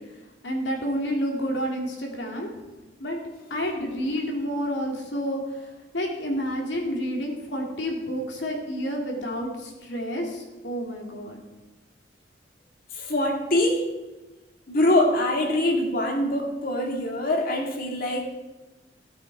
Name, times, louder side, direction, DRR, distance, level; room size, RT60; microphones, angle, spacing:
voice 1, 0.4-2.5 3.0-3.2 3.5-11.4, equal, 75° left, 0 dB, 2.7 m, -29 dB
voice 2, 12.9-13.9 14.7-18.2, left 1 dB, 50° left, 2 dB, 2.1 m, -24 dB
16.5 x 8.5 x 4.8 m, 1.1 s
head